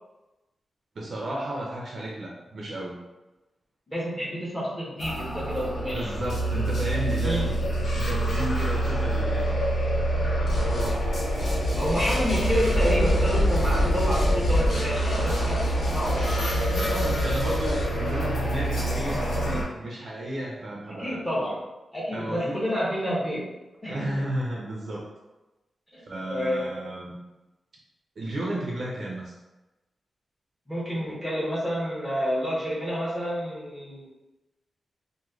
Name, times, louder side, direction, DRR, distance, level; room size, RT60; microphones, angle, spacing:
voice 1, 1.0-3.0 5.9-7.6 7.9-9.6 10.4-11.0 16.9-21.2 22.1-22.6 23.9-25.1 26.0-27.2 28.2-29.3, right 1 dB, 50° right, -3 dB, 0.6 m, -33 dB
voice 2, 3.9-6.1 7.2-7.5 11.8-17.0 20.9-21.6 21.9-23.6 23.8-24.2 25.9-26.0 26.3-26.7 30.7-34.1, equal, 5° left, -8 dB, 1.1 m, -29 dB
sound 1, 5.0-19.6, right 1 dB, 65° left, 0.9 m, -27 dB
sound 2, 10.4-14.7, left 1 dB, 40° left, 0.3 m, -27 dB
sound 3, 10.5-11.0 11.4-14.7 14.9-17.8, left 2 dB, 85° left, 1.0 m, -31 dB
3.0 x 2.2 x 3.6 m, 1.0 s
wide cardioid pair, 175°, 0 cm